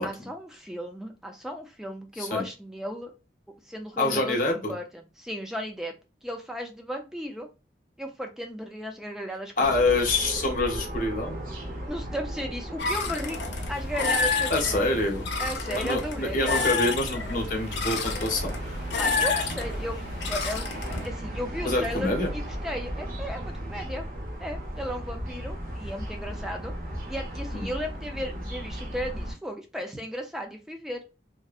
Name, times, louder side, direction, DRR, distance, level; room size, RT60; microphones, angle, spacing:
voice 1, 0.0-3.1 3.7-4.8 5.2-5.9 6.2-7.5 8.0-10.0 11.9-13.4 13.7-14.9 15.4-16.6 19.0-20.0 20.3-24.0 24.4-26.7 27.1-31.0, equal, 5° right, 3 dB, 0.4 m, -35 dB
voice 2, 4.0-4.7 9.6-11.4 14.5-15.2 15.7-18.6 21.6-22.3 27.5-27.6, left 2 dB, 50° left, 1 dB, 0.7 m, -26 dB
sound 1, 9.6-29.3, equal, 50° right, 0.7 m, -36 dB
sound 2, 12.8-21.1, left 4 dB, 90° left, 0.6 m, -30 dB
2.6 x 2.1 x 2.3 m, 0.30 s
head